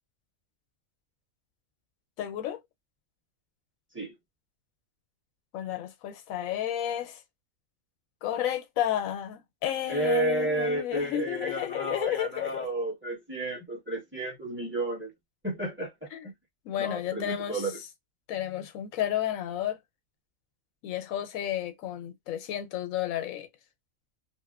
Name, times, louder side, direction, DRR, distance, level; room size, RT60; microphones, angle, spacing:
voice 1, 2.2-2.6 5.5-7.2 8.2-12.7 16.1-16.3 16.6-17.6 18.3-19.8 20.8-23.5, left 11 dB, 85° left, 1.0 m, -32 dB
voice 2, 9.9-15.1 15.4-16.3 16.8-17.8, right 1 dB, 10° right, 0.9 m, -31 dB
2.8 x 2.1 x 2.3 m
omnidirectional pair, 1.4 m